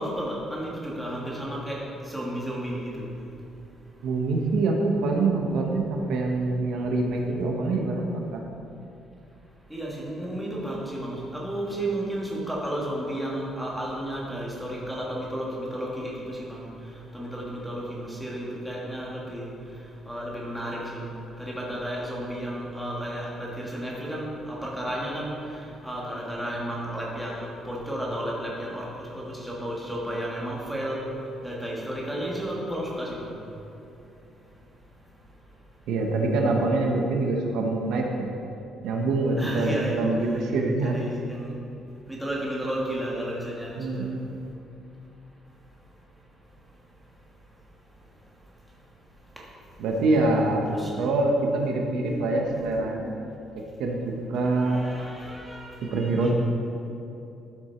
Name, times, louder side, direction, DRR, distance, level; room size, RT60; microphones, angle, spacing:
voice 1, 0.0-3.1 9.7-21.1 21.4-33.3 39.4-40.0 40.8-41.6 42.1-44.1 49.4-49.5 50.7-50.9 54.4-56.3, right 1 dB, ahead, -5 dB, 1.6 m, -33 dB
voice 2, 4.0-8.4 35.9-38.3 38.8-41.0 43.8-44.2 49.8-50.7 50.9-53.1 53.5-54.8 55.8-56.3, right 2 dB, 80° right, 1 dB, 1.1 m, -25 dB
12.0 x 6.2 x 4.5 m, 2.7 s
cardioid pair, 170°, 0 cm